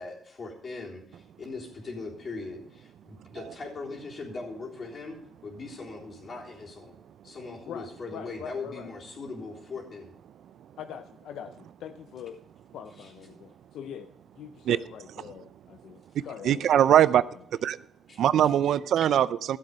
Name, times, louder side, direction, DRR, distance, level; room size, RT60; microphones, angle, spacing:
voice 1, 0.0-7.0 7.2-10.1 13.0-13.1 18.1-18.5, left 3 dB, 45° left, -2 dB, 3.7 m, -40 dB
voice 2, 7.7-8.9 10.8-12.4 12.7-16.8, left 9 dB, 75° left, 9 dB, 0.5 m, -43 dB
voice 3, 16.4-17.2 17.6-17.8 18.2-19.6, right 10 dB, 70° right, 17 dB, 0.4 m, -21 dB
14.0 x 7.7 x 5.5 m, 0.71 s
cardioid pair, 90°, 0 cm